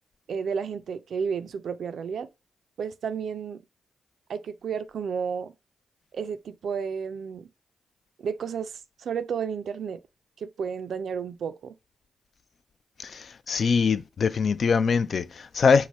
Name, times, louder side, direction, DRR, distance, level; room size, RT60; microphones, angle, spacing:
voice 1, 0.3-2.3 2.8-3.6 4.3-5.5 6.1-7.5 8.2-10.0 10.4-11.8, right 6 dB, 70° right, 0.3 m, -32 dB
voice 2, 13.0-15.9, left 5 dB, 60° left, 0.3 m, -23 dB
4.7 x 2.1 x 4.1 m
supercardioid pair, 55°, 0 cm